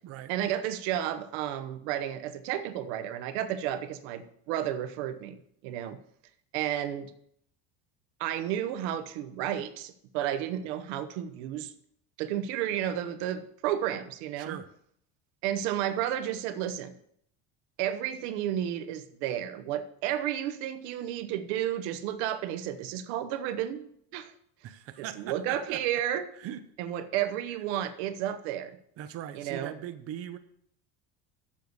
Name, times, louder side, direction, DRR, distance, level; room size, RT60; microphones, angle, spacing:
voice 1, 0.3-6.0 6.5-7.1 8.2-11.7 12.2-14.6 15.4-16.9 17.8-24.3 25.0-26.3 26.8-28.8 29.3-29.8, right 11 dB, 90° right, 10 dB, 1.0 m, -32 dB
voice 2, 14.4-14.7 24.6-25.8 26.3-26.6 29.0-30.4, right 11 dB, 45° right, 10 dB, 0.8 m, -40 dB
7.5 x 6.9 x 7.9 m, 0.69 s
cardioid pair, 140°, 32 cm